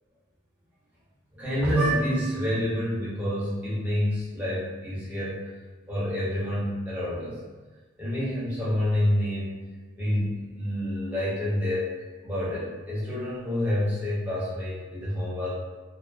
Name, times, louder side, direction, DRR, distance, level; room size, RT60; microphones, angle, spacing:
voice 1, 1.3-5.5 5.9-7.4 8.0-9.6 10.0-15.5, equal, 10° right, -10 dB, 0.8 m, -28 dB
2.5 x 2.2 x 2.5 m, 1.3 s
head